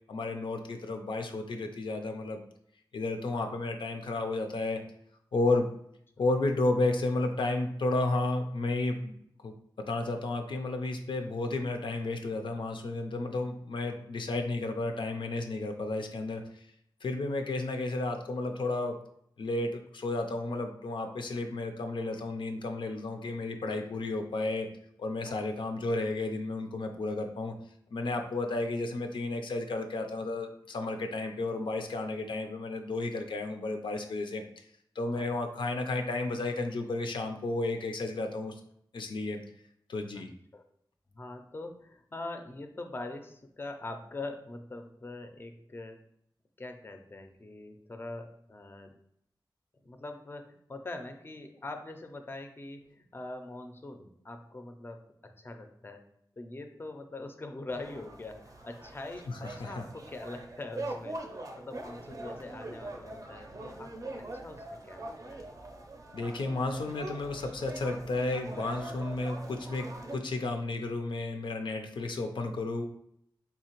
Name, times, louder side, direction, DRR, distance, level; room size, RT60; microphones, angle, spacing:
voice 1, 0.1-2.4 2.9-4.8 5.3-5.7 6.2-9.1 9.4-16.6 17.0-19.0 19.4-24.7 25.0-27.5 27.9-34.4 35.0-38.5 38.9-39.4 39.9-40.3 59.3-59.8 66.1-72.8, left 2 dB, 90° left, 4 dB, 0.4 m, -32 dB
voice 2, 41.1-46.0 46.6-48.9 49.8-56.0 56.4-61.2 61.6-65.5, left 2 dB, 25° left, 6 dB, 0.4 m, -43 dB
sound 1, 57.7-70.2, right 2 dB, 45° right, 0.5 m, -43 dB
3.7 x 2.8 x 2.9 m, 0.71 s
wide cardioid pair, 85°, 8 cm